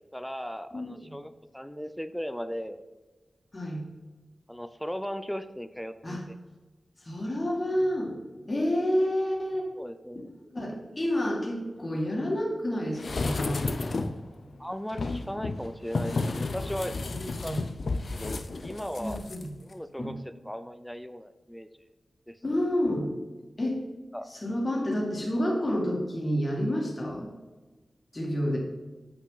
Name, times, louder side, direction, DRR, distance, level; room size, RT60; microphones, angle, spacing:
voice 1, 0.1-2.8 4.5-6.3 9.8-10.3 14.6-16.9 17.4-17.7 17.9-19.2 19.6-20.1 20.4-21.7 22.3-22.4 24.1-24.3, equal, 5° left, 11 dB, 0.5 m, -37 dB
voice 2, 0.7-1.1 3.5-3.8 6.0-6.2 7.0-8.1 8.5-9.7 10.5-14.0 17.1-17.6 19.0-19.5 20.0-20.1 22.4-23.1 23.6-23.8 24.3-27.3 28.1-28.6, equal, 30° left, -2 dB, 2.0 m, -29 dB
sound 1, 13.0-14.3 14.9-19.4 19.7-19.8, left 3 dB, 60° left, 0.5 m, -32 dB
8.2 x 5.8 x 4.0 m, 1.2 s
wide cardioid pair, 125°, 0 cm